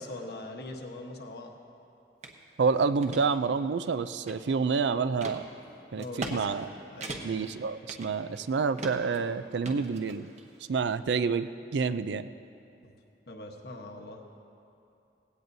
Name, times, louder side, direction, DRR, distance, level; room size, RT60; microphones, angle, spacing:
voice 1, 0.0-1.5 6.0-6.6 6.9-7.3 12.8-12.9 13.3-14.2, left 2 dB, 65° left, 2 dB, 1.2 m, -41 dB
sound 1, 2.2-2.4 2.8-3.2 3.8-4.7 5.2-5.4 6.0-6.4 6.6-6.7 7.0-7.5 7.9-8.5 8.8-9.2 9.6-10.4, right 2 dB, 40° right, 1.0 m, -39 dB
voice 2, 2.6-5.5 5.9-6.7 7.2-10.3 10.7-12.3, right 5 dB, 80° right, 13 dB, 0.4 m, -28 dB
18.0 x 16.5 x 2.7 m, 2.7 s
head